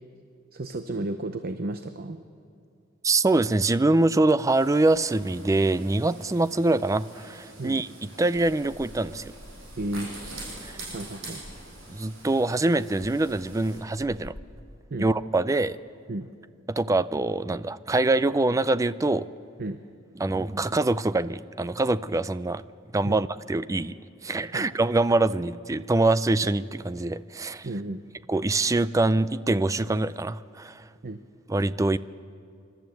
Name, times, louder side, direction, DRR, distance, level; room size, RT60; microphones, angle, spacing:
voice 1, 0.5-2.2 7.6-7.8 9.8-10.1 10.9-11.4 14.9-15.1 16.1-16.3 19.6-19.8 23.0-23.2 24.5-24.7 27.6-28.0 31.0-31.2, right 2 dB, 50° right, 8 dB, 0.7 m, -33 dB
voice 2, 3.0-9.3 10.6-10.7 11.9-14.4 15.0-15.8 16.7-19.3 20.2-22.6 22.9-24.0 24.2-27.7 28.3-30.9 31.5-32.0, right 2 dB, 15° right, 15 dB, 0.4 m, -24 dB
sound 1, 4.5-13.8, right 2 dB, 85° right, 6.5 m, -45 dB
sound 2, 9.1-14.4, equal, 20° left, 4.1 m, -48 dB
26.5 x 12.5 x 7.8 m, 2.3 s
head